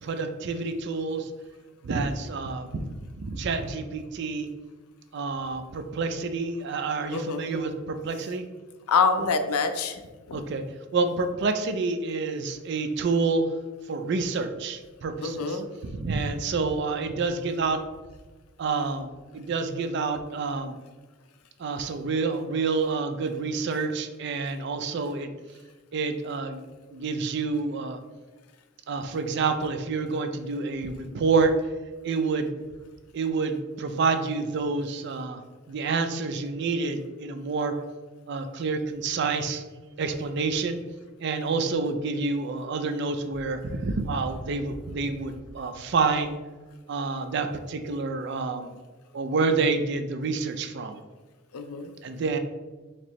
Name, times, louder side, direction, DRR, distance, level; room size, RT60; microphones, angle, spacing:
voice 1, 0.0-1.3 1.8-2.9 3.2-4.5 5.1-8.4 10.3-10.7 10.9-13.4 13.9-15.6 15.9-17.8 18.6-20.8 21.6-25.3 25.9-26.6 26.9-28.0 28.9-31.5 32.0-32.6 33.1-35.4 35.7-37.7 38.3-39.6 40.0-40.8 41.2-46.4 46.9-48.7 49.1-51.0 52.0-52.4, right 4 dB, 50° right, 8 dB, 0.3 m, -28 dB
voice 2, 7.1-7.5 8.9-10.0 15.2-15.7 51.5-51.9, left 5 dB, 90° left, 8 dB, 0.5 m, -25 dB
4.3 x 2.9 x 3.0 m, 1.3 s
head